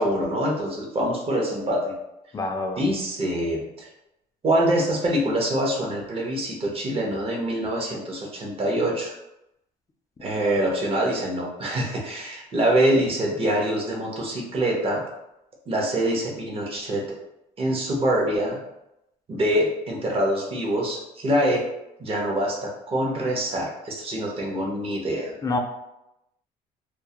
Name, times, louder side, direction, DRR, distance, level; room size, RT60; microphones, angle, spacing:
voice 1, 0.0-1.9 2.8-3.9 4.4-9.1 10.2-15.0 15.7-17.2 17.6-18.6 19.3-21.6 22.0-25.3, right 1 dB, 35° right, -1 dB, 0.7 m, -25 dB
voice 2, 2.3-2.9 25.4-25.6, left 3 dB, 20° left, 3 dB, 0.3 m, -27 dB
2.2 x 2.0 x 2.8 m, 0.86 s
cardioid pair, 110°, 17 cm